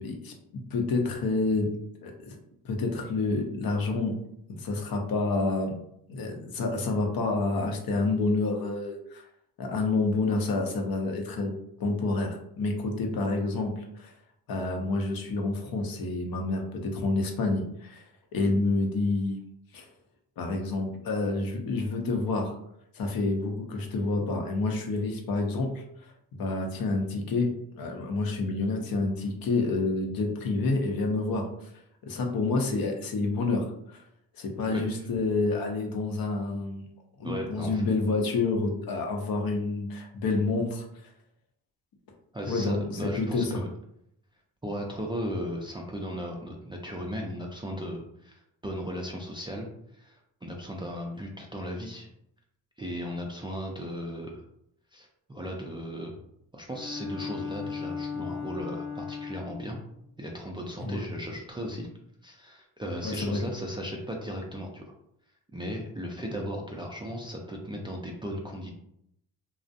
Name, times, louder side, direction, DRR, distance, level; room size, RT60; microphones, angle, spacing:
voice 1, 0.0-1.8 2.0-2.4 2.6-4.2 4.5-5.7 6.1-9.3 9.6-11.5 11.8-14.1 14.5-18.0 18.3-19.4 19.7-19.9 20.4-22.5 22.9-26.1 26.4-31.7 32.0-33.7 34.3-36.9 37.2-40.9 42.5-43.6 60.8-61.0 63.0-63.4, left 3 dB, 55° left, 3 dB, 0.6 m, -28 dB
voice 2, 34.7-35.1 37.2-37.8 42.3-43.7 44.6-49.7 49.9-52.1 52.8-54.4 54.9-56.1 56.5-59.8 60.2-61.9 62.2-64.8 65.5-68.7, equal, 10° right, -1 dB, 0.4 m, -36 dB
Bowed string instrument, 56.7-59.7, left 5 dB, 15° left, 0.7 m, -36 dB
2.4 x 2.0 x 2.6 m, 0.75 s
supercardioid pair, 55°, 43 cm